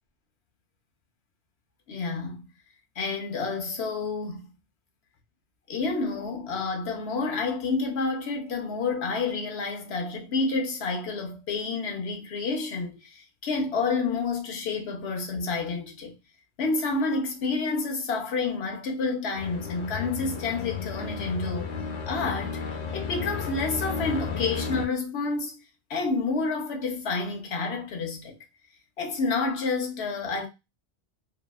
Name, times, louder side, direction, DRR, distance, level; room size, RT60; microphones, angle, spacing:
voice 1, 1.9-2.5 3.0-4.5 5.7-16.1 16.6-21.7 22.1-22.6 22.9-25.6 25.9-28.4 29.0-30.5, left 4 dB, 85° left, 1.0 m, -29 dB
sound 1, 19.4-24.9, left 5 dB, 50° left, 0.5 m, -33 dB
2.7 x 2.3 x 2.2 m
omnidirectional pair, 1.1 m